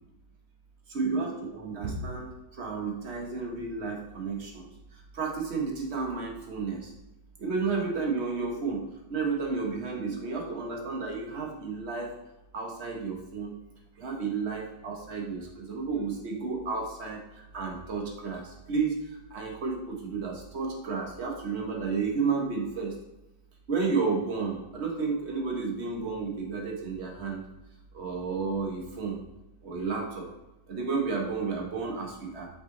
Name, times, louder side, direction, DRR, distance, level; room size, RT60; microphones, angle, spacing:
voice 1, 0.9-2.3 2.6-4.7 5.1-6.9 7.4-8.8 9.1-12.1 12.5-13.5 14.0-17.2 17.5-19.0 19.3-22.9 23.7-27.4 27.9-29.2 29.6-30.3 30.7-32.5, right 4 dB, 40° right, 0 dB, 1.4 m, -32 dB
5.7 x 5.5 x 3.9 m, 0.95 s
omnidirectional pair, 2.0 m